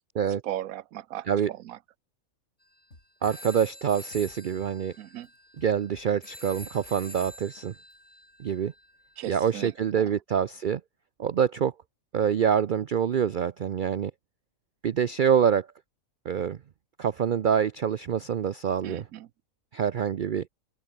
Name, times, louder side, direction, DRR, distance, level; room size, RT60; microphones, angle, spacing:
voice 1, 0.4-1.8 5.0-5.3 9.2-9.7 10.0-10.1 18.8-19.3, right 13 dB, 80° right, 1.1 m, -37 dB
sound 1, 2.6-2.8 3.2-9.9, equal, 5° left, 3.0 m, -47 dB
sound 2, 2.9-5.3 5.6-7.9, left 2 dB, 55° left, 6.9 m, -53 dB
voice 2, 3.2-4.9 5.6-7.7 8.4-8.7 9.3-10.8 11.2-11.7 12.1-14.1 14.8-15.7 16.2-16.6 17.0-19.1 19.7-20.5, right 8 dB, 55° right, 0.5 m, -26 dB
open air
omnidirectional pair, 1.5 m